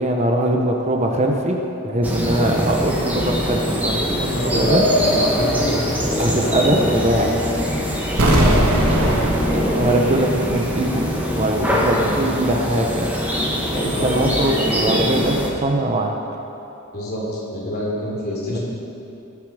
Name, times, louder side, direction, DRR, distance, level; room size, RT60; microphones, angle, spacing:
voice 1, 0.0-4.8 6.2-7.4 9.5-11.1 11.3-13.1 13.7-16.1 18.5-18.6, right 1 dB, 35° right, 2 dB, 0.9 m, -21 dB
sound 1, 2.0-15.5, equal, 10° right, 1.6 m, -23 dB
voice 2, 4.3-5.9 8.3-9.1 9.4-9.6 12.0-12.2 13.9-14.1 16.9-18.6, left 1 dB, 50° left, -5 dB, 3.4 m, -24 dB
sound 2, 8.2-11.1 11.3-11.4, right 1 dB, 85° right, 1.6 m, -20 dB
19.0 x 7.4 x 4.9 m, 2.9 s
head